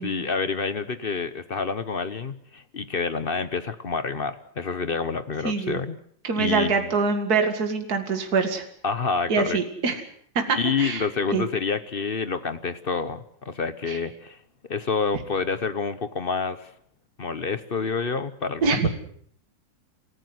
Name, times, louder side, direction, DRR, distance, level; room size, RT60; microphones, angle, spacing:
voice 1, 0.0-6.0 6.4-6.9 8.8-9.6 10.5-14.4 14.7-16.7 17.2-18.9, left 5 dB, 40° left, 13 dB, 0.9 m, -28 dB
voice 2, 5.4-5.8 6.2-8.6 9.3-10.0 10.4-11.1 11.3-11.4 13.9-14.0 18.6-18.9, right 5 dB, 55° right, 6 dB, 2.6 m, -24 dB
28.0 x 15.0 x 7.9 m, 0.63 s
omnidirectional pair, 2.0 m